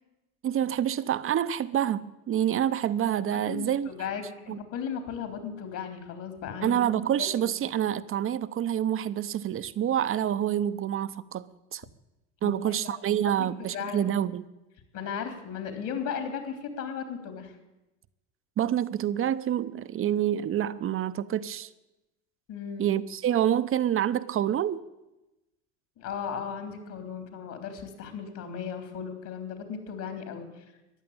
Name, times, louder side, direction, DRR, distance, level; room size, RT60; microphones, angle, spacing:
voice 1, 0.4-3.9 4.5-4.6 6.6-11.9 12.4-14.5 18.6-21.7 22.8-24.8, right 10 dB, 35° right, 0.8 m, -27 dB
voice 2, 3.5-6.8 7.2-7.5 12.4-12.5 13.4-14.1 14.9-17.5 22.5-22.9 26.0-30.7, left 7 dB, 55° left, 3.7 m, -36 dB
14.5 x 10.5 x 8.7 m
hypercardioid pair, 75°, 35 cm